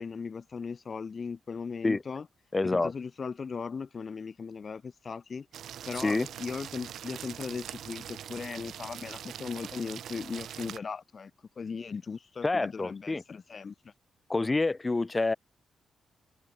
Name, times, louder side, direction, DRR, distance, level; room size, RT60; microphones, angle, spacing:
voice 1, 0.0-2.3 2.6-5.5 5.9-11.3 11.6-13.9, left 5 dB, 40° left, 2.4 m, -38 dB
voice 2, 2.5-2.9 6.0-6.3 12.4-13.2 14.3-15.4, left 3 dB, 20° left, 0.6 m, -27 dB
sound 1, 5.5-10.8, right 10 dB, 75° right, 2.9 m, -42 dB
cardioid pair, 105°, 0 cm